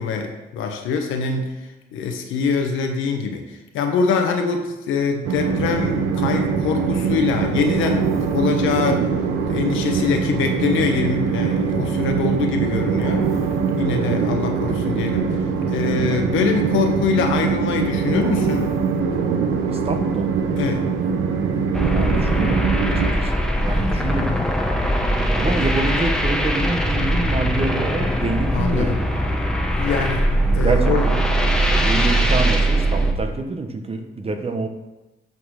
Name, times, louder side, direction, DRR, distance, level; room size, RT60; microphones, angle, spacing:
voice 1, 0.0-1.5 1.9-3.4 3.7-9.1 9.5-13.3 13.8-15.4 15.7-18.7 20.6-20.8 23.8-24.0 28.5-29.0 29.8-30.3 30.5-31.1 32.1-32.2, left 5 dB, 90° left, 4 dB, 1.2 m, -23 dB
Train, 5.2-23.1, right 6 dB, 85° right, 0.9 m, -22 dB
voice 2, 19.7-20.3 21.9-22.6 23.0-24.4 25.3-29.0 30.5-31.2 31.8-34.7, right 3 dB, 30° right, 6 dB, 1.0 m, -26 dB
sound 1, 21.7-33.1, right 1 dB, 5° left, 1.0 m, -21 dB
8.6 x 4.2 x 6.4 m, 1.0 s
cardioid pair, 90°, 20 cm